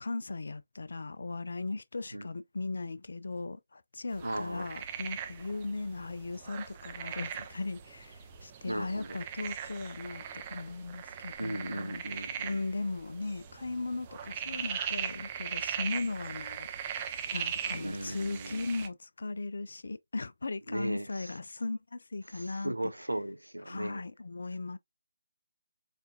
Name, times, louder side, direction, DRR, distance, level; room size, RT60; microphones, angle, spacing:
voice 1, 0.0-12.0 12.4-22.7 23.7-24.8, left 3 dB, 65° left, 0.4 m, -37 dB
sound 1, 4.1-18.9, right 8 dB, 25° right, 0.4 m, -40 dB
voice 2, 4.2-4.7 8.7-9.2 11.4-12.7 17.7-18.7 20.7-21.4 22.3-24.0, right 1 dB, 90° right, 0.3 m, -37 dB
4.3 x 2.4 x 2.3 m
figure-of-eight pair, 150°, 0 cm